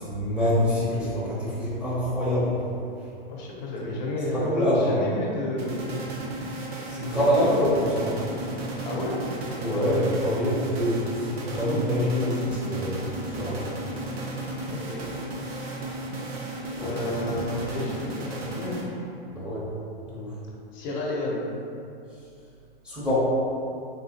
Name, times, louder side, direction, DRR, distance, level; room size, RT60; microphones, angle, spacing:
voice 1, 0.0-2.5 4.3-4.9 6.9-8.1 9.6-13.7 16.7-17.3 19.3-19.7 20.1-20.3 22.8-23.3, equal, 5° right, -10 dB, 0.7 m, -25 dB
voice 2, 3.3-6.0 7.1-7.3 8.8-9.2 14.8-15.0 16.8-18.9 20.7-21.5, left 1 dB, 45° left, -3 dB, 0.8 m, -31 dB
sound 1, 5.6-19.2, right 1 dB, 85° right, 0.8 m, -34 dB
3.7 x 2.7 x 2.7 m, 2.5 s
hypercardioid pair, 130°, 30 cm